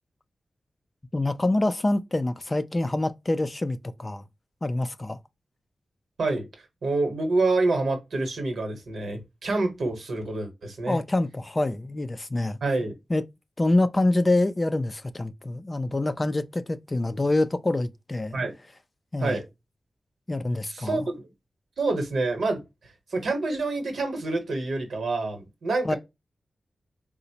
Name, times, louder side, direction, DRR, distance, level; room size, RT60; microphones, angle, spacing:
voice 1, 1.1-4.2 4.6-5.2 10.9-12.6 13.1-13.2 13.6-18.4 19.1-19.4 20.3-21.1 25.8-26.0, left 2 dB, 25° left, 0.3 m, -26 dB
voice 2, 6.8-11.0 12.6-12.9 18.3-18.5 19.2-19.4 20.7-21.1 21.8-26.0, right 3 dB, 80° right, 1.0 m, -27 dB
3.8 x 2.0 x 2.7 m
wide cardioid pair, 100°, 0 cm